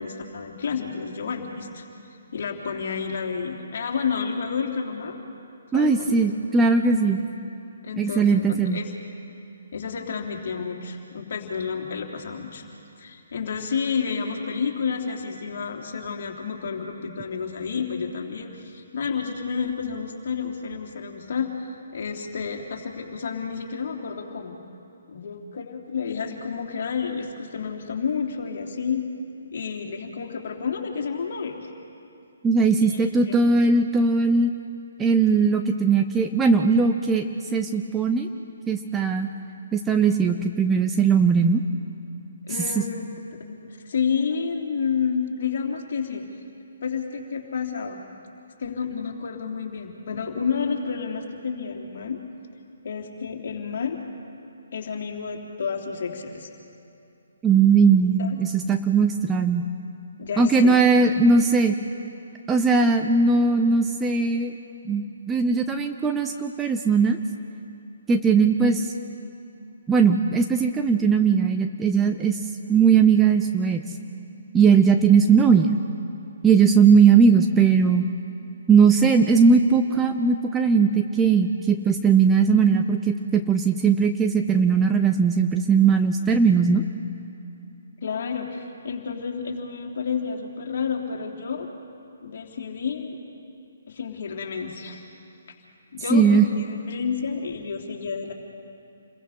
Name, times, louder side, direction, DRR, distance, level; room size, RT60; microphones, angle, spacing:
voice 1, 0.0-1.8 2.3-5.1 5.7-6.2 7.8-8.9 9.7-12.6 13.0-24.6 25.1-29.0 29.5-31.7 32.8-33.4 42.5-46.2 46.8-48.0 48.6-52.2 52.8-54.0 54.7-56.5 58.2-58.4 60.2-60.8 88.0-91.7 92.2-93.2 93.9-95.0 95.9-98.3, left 6 dB, 50° left, 1 dB, 3.1 m, -30 dB
voice 2, 5.7-7.2 8.0-8.8 32.4-34.5 35.0-37.3 37.5-38.3 38.7-39.3 39.7-41.6 57.4-59.6 60.4-61.7 62.5-64.5 64.9-67.2 68.1-68.9 69.9-72.4 72.7-73.8 74.5-75.8 76.4-78.1 78.7-86.8 96.1-96.5, right 5 dB, 10° right, 5 dB, 0.8 m, -19 dB
29.0 x 22.0 x 5.6 m, 2.7 s
figure-of-eight pair, 135°, 0 cm